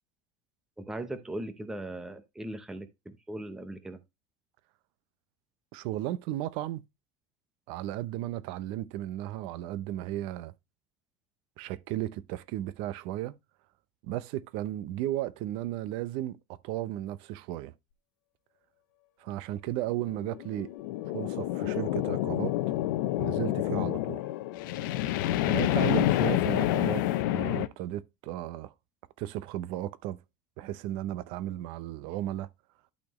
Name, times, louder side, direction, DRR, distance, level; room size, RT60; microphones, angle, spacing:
voice 1, 0.8-4.0, right 1 dB, 5° right, 0.7 m, -39 dB
voice 2, 5.7-6.8 7.7-10.5 11.6-13.3 14.0-16.4 16.6-17.7 19.2-20.7 21.1-22.6 23.2-24.2 25.4-27.0 27.3-28.7 29.2-30.2 30.6-32.5, right 14 dB, 55° right, 0.6 m, -34 dB
sound 1, 20.0-27.7, left 14 dB, 85° left, 0.7 m, -28 dB
11.5 x 4.3 x 3.0 m
cardioid pair, 165°, 11 cm